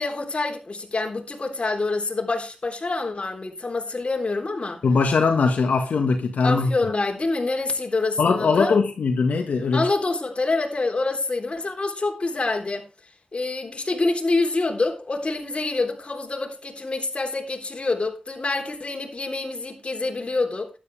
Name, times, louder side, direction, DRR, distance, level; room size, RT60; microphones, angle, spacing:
voice 1, 0.0-4.8 6.4-8.7 9.7-12.8 13.3-20.7, left 3 dB, 45° left, 3.7 m, -26 dB
voice 2, 4.8-6.7 8.2-9.9, left 4 dB, 90° left, 1.7 m, -21 dB
12.5 x 11.0 x 3.5 m
cardioid pair, 55°, 3 cm